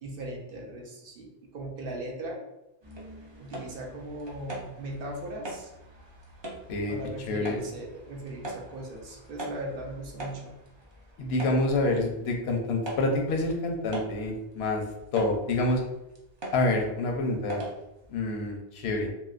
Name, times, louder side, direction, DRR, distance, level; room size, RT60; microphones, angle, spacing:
voice 1, 0.0-2.4 3.4-5.7 6.9-10.5, right 1 dB, 65° right, 0 dB, 0.8 m, -38 dB
sound 1, 2.8-18.2, right 1 dB, 35° right, 0.5 m, -43 dB
voice 2, 7.3-7.6 11.2-14.8 15.1-15.8 16.5-17.6 18.1-19.1, left 2 dB, 85° left, 2 dB, 0.8 m, -27 dB
2.9 x 2.7 x 2.4 m, 0.90 s
omnidirectional pair, 1.1 m